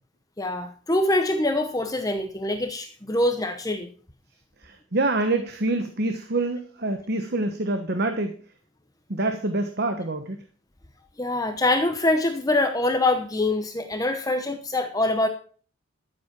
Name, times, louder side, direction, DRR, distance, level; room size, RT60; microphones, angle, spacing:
voice 1, 0.4-3.9 11.2-15.3, left 2 dB, 15° left, 7 dB, 0.9 m, -24 dB
voice 2, 4.6-8.3 9.1-10.4, right 2 dB, 45° right, 7 dB, 1.1 m, -26 dB
13.5 x 7.7 x 6.0 m, 0.43 s
head